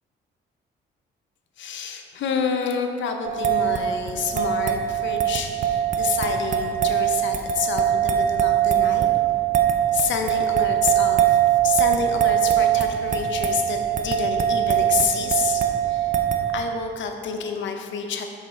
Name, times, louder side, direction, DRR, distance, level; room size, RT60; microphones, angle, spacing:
voice 1, 1.6-9.1 9.9-11.4 11.6-16.1 16.5-18.2, left 6 dB, 70° left, 5 dB, 0.7 m, -28 dB
sound 1, 3.2-16.6, right 10 dB, 40° right, 0.5 m, -22 dB
5.9 x 5.4 x 3.7 m, 2.4 s
cardioid pair, 90°, 20 cm